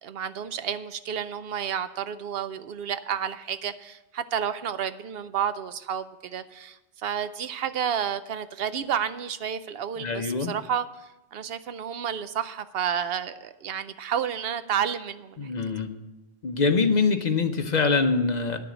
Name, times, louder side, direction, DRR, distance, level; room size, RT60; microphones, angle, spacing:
voice 1, 0.0-15.5, right 8 dB, 70° right, 0.8 m, -31 dB
voice 2, 10.0-10.5 15.4-15.9 16.4-18.6, left 4 dB, 45° left, 0.8 m, -24 dB
9.3 x 6.9 x 8.2 m
omnidirectional pair, 1.1 m